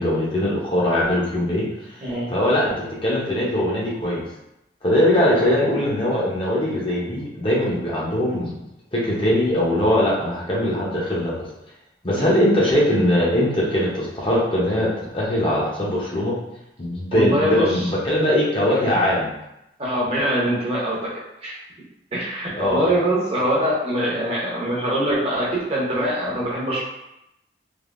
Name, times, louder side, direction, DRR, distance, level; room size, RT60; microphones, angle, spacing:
voice 1, 0.0-2.7 3.0-4.2 4.8-8.5 8.9-11.3 12.0-16.3 16.8-19.3 22.6-22.9, left 1 dB, 30° left, -5 dB, 0.7 m, -21 dB
voice 2, 2.0-2.3 12.1-12.3 17.1-17.8 19.8-21.1 21.4-21.6 22.1-26.8, right 1 dB, 35° right, -5 dB, 0.7 m, -23 dB
3.3 x 2.6 x 2.5 m, 0.85 s
head